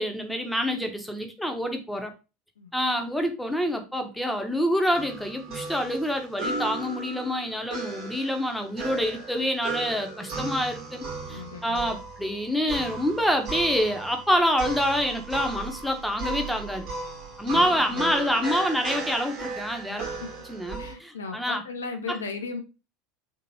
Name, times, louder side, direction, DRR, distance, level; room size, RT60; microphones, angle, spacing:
voice 1, 0.0-2.1 2.7-16.9 17.4-20.1 20.5-21.6 22.1-22.2, equal, ahead, 4 dB, 0.6 m, -27 dB
sound 1, 4.9-20.9, right 3 dB, 50° right, 1.0 m, -36 dB
voice 2, 11.3-11.9 17.5-18.2 19.9-20.1 20.8-22.6, left 4 dB, 75° left, 6 dB, 0.6 m, -37 dB
2.9 x 2.7 x 2.8 m, 0.30 s
figure-of-eight pair, 75°, 0 cm